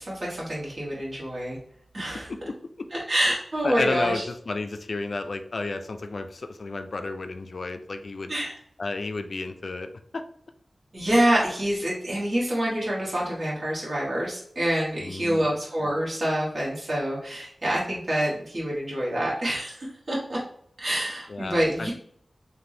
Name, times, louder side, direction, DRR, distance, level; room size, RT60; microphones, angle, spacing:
voice 1, 0.0-1.6 1.9-2.3 2.9-4.2 8.3-8.6 10.9-20.4 20.8-21.9, right 1 dB, 55° right, -6 dB, 1.2 m, -26 dB
voice 2, 3.6-8.3 8.8-10.2 15.0-15.5 21.3-21.9, left 3 dB, 65° left, 7 dB, 0.3 m, -32 dB
3.3 x 2.5 x 2.7 m, 0.64 s
wide cardioid pair, 65°, 0 cm